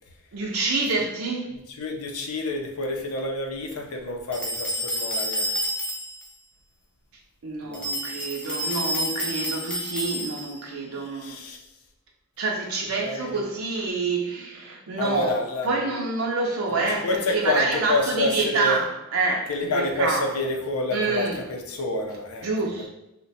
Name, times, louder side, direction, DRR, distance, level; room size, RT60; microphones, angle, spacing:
voice 1, 0.3-1.6 7.4-11.4 12.4-15.4 15.6-20.3 20.9-21.4 22.4-22.9, right 3 dB, 70° right, 0.4 m, -27 dB
voice 2, 1.8-5.6 7.6-7.9 11.0-11.6 13.0-13.4 15.0-15.7 17.0-18.8 19.5-22.5 22.7-22.9, left 2 dB, 85° left, 0.6 m, -28 dB
sound 1, 4.3-6.3 7.7-10.6, equal, 5° left, 0.5 m, -29 dB
2.8 x 2.2 x 4.1 m
head